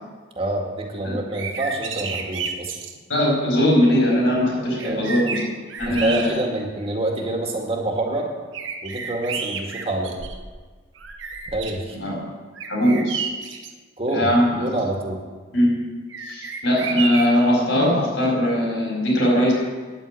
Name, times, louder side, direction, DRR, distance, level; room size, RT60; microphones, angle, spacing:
voice 1, 0.4-2.7 4.8-5.1 5.9-8.3 8.8-10.2 11.5-12.0 14.0-15.2, right 1 dB, 30° right, 1 dB, 2.0 m, -26 dB
sound 1, 1.2-3.0 4.3-4.4 4.8-6.7 7.3-7.4 8.5-10.6 11.0-11.8 12.6-13.7 16.1-17.5, right 5 dB, 80° right, 1.1 m, -31 dB
voice 2, 3.1-5.3 5.8-6.4 11.9-12.2 12.7-13.2 14.1-14.5 15.5-15.7 16.2-19.5, equal, 80° left, -4 dB, 4.6 m, -20 dB
10.0 x 8.5 x 8.2 m, 1.4 s
head